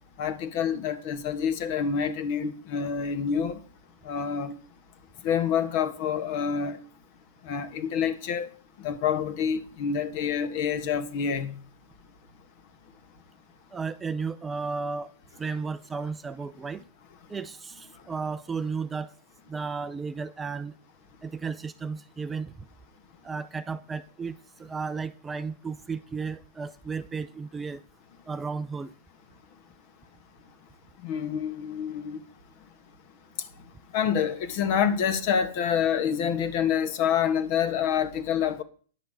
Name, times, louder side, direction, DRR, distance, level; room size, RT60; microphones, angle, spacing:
voice 1, 0.2-3.6 4.0-4.5 5.2-6.8 7.4-8.5 8.8-11.6 31.0-32.2 33.9-38.6, left 7 dB, 50° left, 1.5 m, -27 dB
voice 2, 13.7-15.1 15.4-16.8 17.3-19.1 19.5-20.7 21.2-22.5 23.2-27.8 28.3-28.9, right 5 dB, 15° right, 0.5 m, -34 dB
10.5 x 5.7 x 8.0 m
hypercardioid pair, 140°, 0 cm